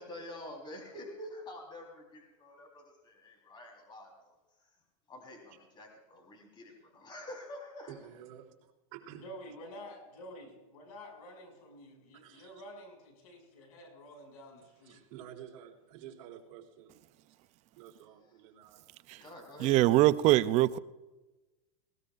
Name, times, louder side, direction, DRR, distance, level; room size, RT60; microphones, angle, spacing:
voice 1, 0.0-4.3 5.1-7.9 19.2-19.7, left 1 dB, 25° left, 4.0 m, -47 dB
voice 2, 7.9-9.2 12.2-12.7 14.8-17.0 17.7-18.9 20.1-20.3, right 10 dB, 55° right, 3.3 m, -51 dB
voice 3, 9.1-15.0, equal, 75° left, 6.3 m, -49 dB
voice 4, 19.6-20.8, right 16 dB, 35° right, 0.5 m, -23 dB
20.0 x 18.5 x 2.5 m
supercardioid pair, 135°, 19 cm